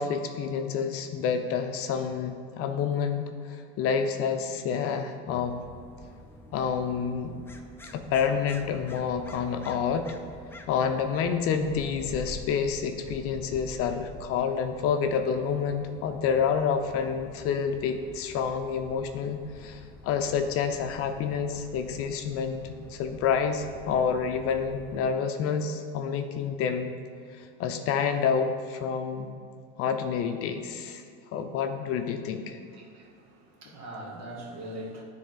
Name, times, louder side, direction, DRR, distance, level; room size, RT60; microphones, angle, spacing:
voice 1, 0.0-3.2 3.8-5.6 6.5-7.4 7.9-10.1 10.7-26.9 27.3-29.3 29.8-31.0 31.3-32.6, left 6 dB, 45° left, 6 dB, 0.6 m, -28 dB
sound 1, 5.3-25.1, left 1 dB, 5° left, 0.4 m, -47 dB
voice 2, 32.7-35.0, right 1 dB, 55° right, -2 dB, 1.7 m, -41 dB
10.0 x 3.6 x 3.9 m, 2.3 s
supercardioid pair, 110°, 32 cm